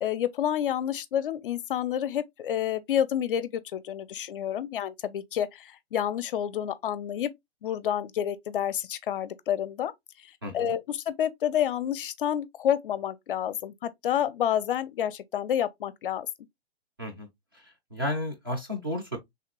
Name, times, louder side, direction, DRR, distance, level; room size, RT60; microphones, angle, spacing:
voice 1, 0.0-7.3 7.6-9.9 10.5-16.3, left 10 dB, 55° left, 0.4 m, -29 dB
voice 2, 10.4-10.8 17.0-17.3 17.5-17.6 17.9-19.2, left 1 dB, 20° right, 0.3 m, -32 dB
3.2 x 2.2 x 2.9 m
hypercardioid pair, 150°, 33 cm